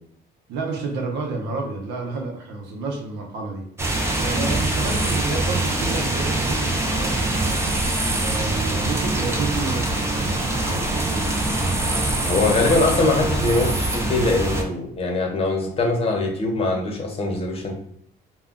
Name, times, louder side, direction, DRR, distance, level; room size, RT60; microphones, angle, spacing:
voice 1, 0.5-7.7 8.2-11.3, right 3 dB, 85° right, 1 dB, 0.7 m, -30 dB
sound 1, 3.8-14.6, right 2 dB, 15° right, 0.5 m, -23 dB
voice 2, 12.2-17.8, left 2 dB, 35° left, 1 dB, 0.8 m, -22 dB
2.2 x 2.2 x 3.6 m, 0.65 s
cardioid pair, 110°, 17 cm